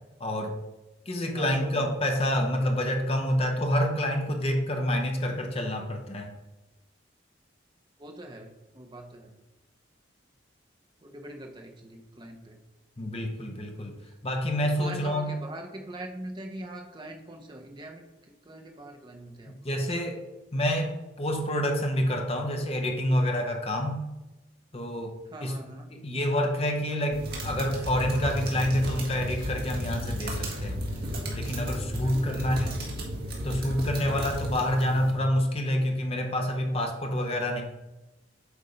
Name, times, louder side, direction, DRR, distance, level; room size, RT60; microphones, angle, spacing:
voice 1, 0.2-0.5 1.1-6.3 13.0-13.9 14.2-15.3 19.6-20.2 20.5-24.0 24.7-25.6 25.9-30.8 31.3-32.8 33.4-37.6, equal, 30° left, 3 dB, 0.9 m, -28 dB
voice 2, 1.3-1.9 8.0-9.4 11.0-12.6 14.6-18.0 18.4-19.7 25.3-25.9 32.0-32.8, right 1 dB, 25° right, 2 dB, 0.8 m, -43 dB
sound 1, 27.1-35.1, equal, 50° right, 1.7 m, -33 dB
8.1 x 3.6 x 5.1 m, 1.1 s
head